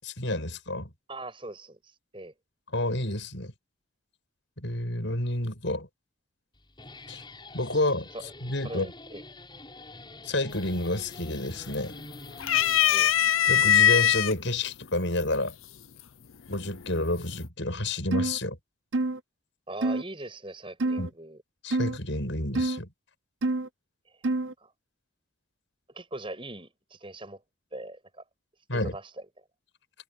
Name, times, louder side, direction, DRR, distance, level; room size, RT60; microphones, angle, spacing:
voice 1, 0.0-0.9 2.7-3.5 4.6-5.9 7.1-7.2 7.5-8.1 8.4-8.9 10.2-12.0 13.5-15.5 16.5-18.6 21.0-21.1 21.6-22.9 28.7-28.9, left 1 dB, 65° left, 6.7 m, -29 dB
voice 2, 1.1-2.3 8.1-8.3 8.6-9.2 12.9-13.1 19.7-21.4 24.6-24.7 25.9-27.4 27.7-28.2 28.7-29.1, right 2 dB, 25° right, 7.1 m, -41 dB
Guitar, 6.5-13.2, left 2 dB, 20° left, 7.3 m, -47 dB
sound 1, 10.5-11.0 11.3-12.0 12.4-14.3 15.2-15.3 16.5-17.0, left 10 dB, 85° left, 0.6 m, -21 dB
sound 2, 18.1-18.4 18.9-19.2 19.8-20.0 20.8-21.1 21.7-22.0 22.5-22.8 23.4-23.7 24.2-24.5, right 2 dB, 70° right, 0.7 m, -27 dB
head